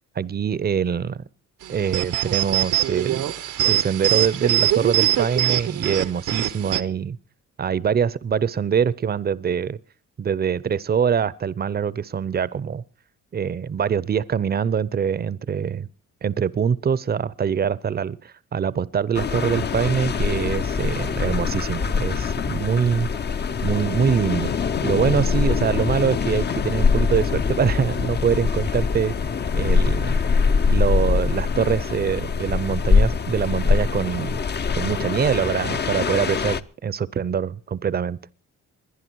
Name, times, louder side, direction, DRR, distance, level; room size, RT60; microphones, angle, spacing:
voice 1, 0.2-1.2 1.7-3.3 3.6-7.2 7.6-9.8 10.2-12.8 13.3-15.9 16.2-23.1 23.6-24.5 24.8-29.1 29.5-30.2 30.7-34.4 34.7-38.2, right 7 dB, 30° right, 0.7 m, -24 dB
sound 1, 1.6-6.8, right 12 dB, 85° right, 1.0 m, -23 dB
sound 2, 19.1-36.6, left 5 dB, 35° left, 0.7 m, -23 dB
21.0 x 11.0 x 4.6 m
cardioid pair, 90°, 30 cm